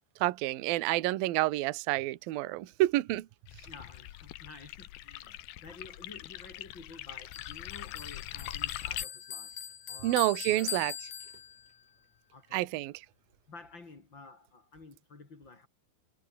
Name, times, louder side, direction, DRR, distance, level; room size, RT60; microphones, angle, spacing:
voice 1, 0.2-3.3 10.0-10.9 12.5-13.1, right 17 dB, 80° right, 2.1 m, -29 dB
sound 1, 3.5-9.1, left 15 dB, 85° left, 2.1 m, -42 dB
voice 2, 3.7-9.6 9.9-10.8 12.3-12.7 13.5-15.7, left 3 dB, 25° left, 3.5 m, -51 dB
Bell, 7.3-11.8, left 9 dB, 50° left, 2.6 m, -42 dB
omnidirectional pair, 5.9 m